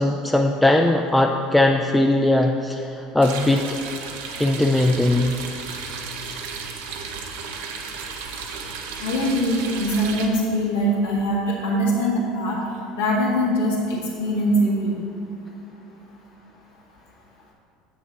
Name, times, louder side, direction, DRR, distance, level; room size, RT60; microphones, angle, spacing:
voice 1, 0.0-3.7 4.4-5.4, left 1 dB, 5° left, 3 dB, 0.4 m, -19 dB
sound 1, 3.2-10.3, right 5 dB, 70° right, 0.7 m, -34 dB
voice 2, 9.0-12.6 12.9-14.9, equal, 75° left, -4 dB, 1.8 m, -22 dB
7.7 x 6.0 x 4.0 m, 2.9 s
hypercardioid pair, 70°, 0 cm